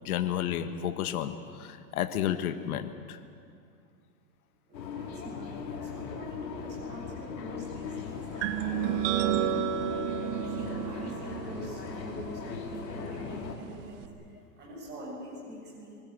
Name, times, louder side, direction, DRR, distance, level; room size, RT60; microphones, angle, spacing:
voice 1, 0.0-3.2, left 10 dB, 60° left, 9 dB, 1.5 m, -31 dB
sound 1, 4.7-13.6, left 6 dB, 80° left, 3.7 m, -39 dB
voice 2, 4.7-8.9 10.5-14.1 14.6-16.0, equal, 20° right, -4 dB, 7.4 m, -45 dB
sound 2, 8.4-14.1, right 10 dB, 40° right, 1.4 m, -32 dB
24.5 x 19.5 x 8.5 m, 2.3 s
hypercardioid pair, 155°, 49 cm